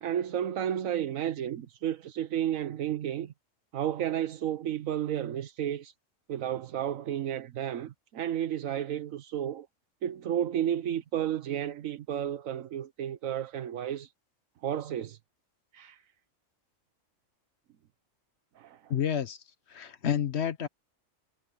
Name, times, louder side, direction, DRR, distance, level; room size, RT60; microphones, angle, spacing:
voice 1, 0.0-3.3 3.7-5.9 6.3-9.7 10.0-14.1 14.6-15.2 15.7-16.0 18.6-18.8, right 10 dB, 85° right, 1.3 m, -32 dB
voice 2, 18.9-19.4 19.7-20.7, left 9 dB, 60° left, 1.2 m, -29 dB
omnidirectional pair, 1.4 m